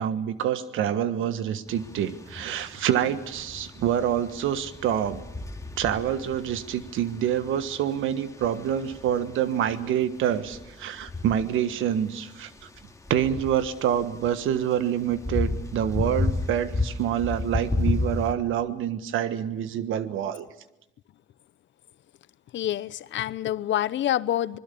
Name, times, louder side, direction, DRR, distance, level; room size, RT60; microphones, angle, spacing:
voice 1, 0.0-5.2 5.8-12.5 13.1-20.5, right 10 dB, 85° right, 1.4 m, -27 dB
sound 1, 1.7-18.3, left 3 dB, 15° left, 2.3 m, -34 dB
voice 2, 22.5-24.6, left 12 dB, 70° left, 0.8 m, -27 dB
26.0 x 21.0 x 7.0 m
cardioid pair, 90°, 20 cm